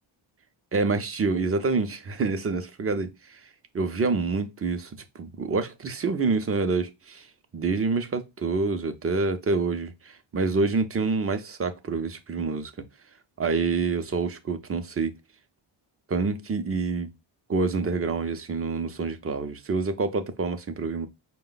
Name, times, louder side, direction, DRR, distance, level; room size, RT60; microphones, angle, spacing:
voice 1, 0.7-3.4 3.7-7.3 7.5-12.7 13.4-15.1 16.1-17.1 17.5-21.1, right 4 dB, 30° right, 0.6 m, -27 dB
4.8 x 2.2 x 3.8 m
cardioid pair, 105°, 47 cm